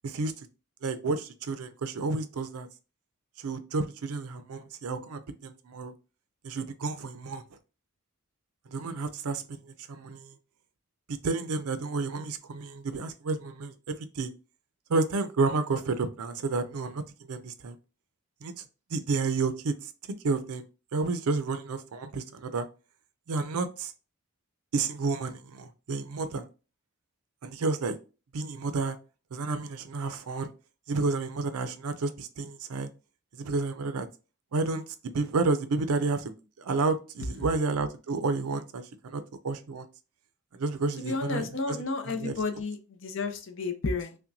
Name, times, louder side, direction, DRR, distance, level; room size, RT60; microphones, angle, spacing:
voice 1, 0.8-2.7 3.4-5.9 6.4-7.4 8.7-9.6 9.9-10.3 11.1-14.3 14.9-17.0 17.3-17.8 18.4-18.6 18.9-19.9 20.2-20.6 20.9-22.7 23.3-23.9 24.7-26.5 27.4-28.0 28.3-29.0 29.3-30.5 30.9-32.9 33.3-34.1 34.5-36.3 36.6-39.9 40.5-42.3, right 3 dB, 80° right, 0.5 m, -31 dB
voice 2, 41.0-44.2, left 3 dB, 55° left, 0.6 m, -32 dB
5.6 x 2.2 x 2.6 m
head